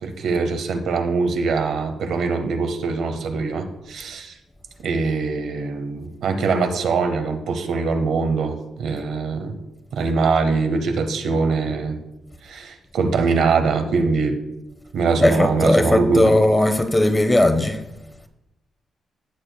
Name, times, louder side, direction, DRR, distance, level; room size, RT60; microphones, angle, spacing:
voice 1, 0.0-4.3 4.8-9.6 9.9-12.0 12.4-14.3 14.9-16.3, right 4 dB, 75° right, 7 dB, 0.9 m, -22 dB
voice 2, 15.1-17.8, left 1 dB, 10° left, 8 dB, 0.8 m, -18 dB
16.0 x 6.5 x 2.2 m, 0.90 s
cardioid pair, 125°, 0 cm